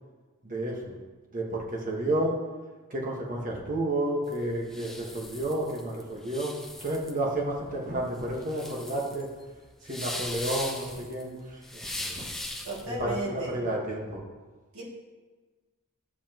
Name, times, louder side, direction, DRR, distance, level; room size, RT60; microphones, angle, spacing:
voice 1, 0.4-1.0 1.3-2.3 2.9-6.5 6.8-9.3 9.8-12.3 12.9-14.2, right 1 dB, 40° right, -2 dB, 1.5 m, -31 dB
sound 1, 4.3-12.9, left 1 dB, ahead, 0.7 m, -39 dB
voice 2, 12.6-13.6 14.7-14.8, right 1 dB, 70° right, -5 dB, 2.4 m, -34 dB
11.5 x 7.4 x 3.0 m, 1.3 s
head